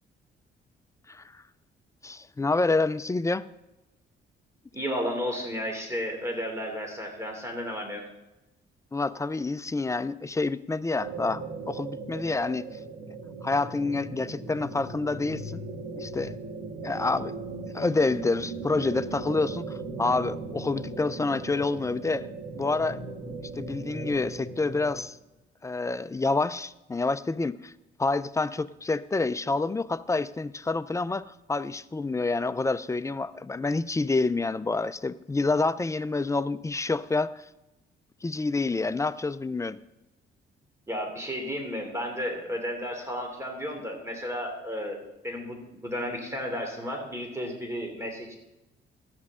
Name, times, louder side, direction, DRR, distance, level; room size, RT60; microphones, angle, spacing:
voice 1, 1.1-1.4 2.0-3.4 8.9-12.7 13.4-15.6 16.0-16.3 16.8-17.3 17.7-22.3 22.6-23.0 23.5-25.2 25.6-27.7 28.0-37.4 38.2-39.8, left 3 dB, 15° left, 14 dB, 0.4 m, -28 dB
voice 2, 4.7-8.0 40.9-48.3, equal, 15° right, 2 dB, 3.0 m, -33 dB
sound 1, 11.0-25.0, right 3 dB, 75° right, 2.8 m, -38 dB
13.5 x 9.7 x 3.7 m, 0.97 s
cardioid pair, 90°, 20 cm